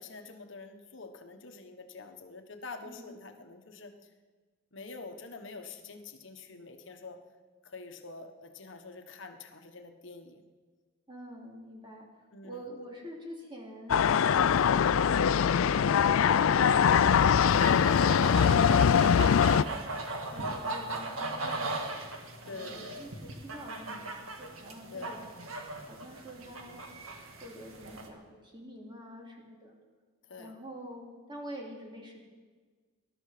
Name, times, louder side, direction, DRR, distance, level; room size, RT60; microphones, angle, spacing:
voice 1, 0.0-3.9 4.7-7.2 7.6-10.4 12.3-12.9 20.3-20.7 22.5-22.9 24.9-25.2 30.2-30.5, left 3 dB, 60° left, 5 dB, 1.2 m, -46 dB
voice 2, 11.1-14.0 14.3-15.4 16.7-17.7 18.2-20.0 20.3-25.2 25.9-26.8 27.4-29.8 30.4-32.2, equal, 25° right, -1 dB, 2.8 m, -46 dB
sound 1, 13.9-19.6, left 7 dB, 80° left, 0.4 m, -22 dB
sound 2, 17.5-28.1, right 2 dB, 85° right, 1.9 m, -38 dB
19.5 x 12.0 x 5.0 m, 1.4 s
head